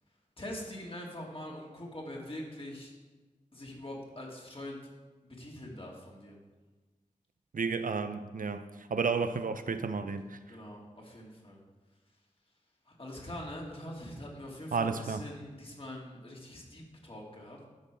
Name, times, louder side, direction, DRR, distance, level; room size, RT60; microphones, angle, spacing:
voice 1, 0.4-2.9 3.5-4.8 5.2-6.4 10.5-11.6 12.9-17.7, left 1 dB, 40° left, -2 dB, 2.8 m, -43 dB
voice 2, 7.5-10.4 14.7-15.2, right 5 dB, 85° right, 10 dB, 0.6 m, -32 dB
12.5 x 5.5 x 6.3 m, 1.3 s
wide cardioid pair, 60°, 14 cm